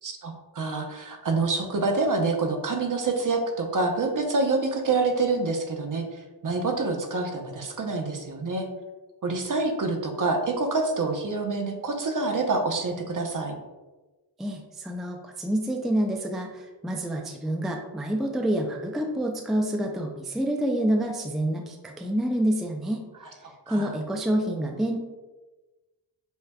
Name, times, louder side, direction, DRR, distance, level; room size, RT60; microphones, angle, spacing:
voice 1, 0.0-8.7 9.2-13.5 23.7-23.9, right 3 dB, 45° right, 3 dB, 0.8 m, -27 dB
voice 2, 14.4-23.0 23.7-25.0, right 1 dB, ahead, 2 dB, 0.4 m, -27 dB
5.5 x 3.2 x 2.3 m, 1.2 s
cardioid pair, 65°, 45 cm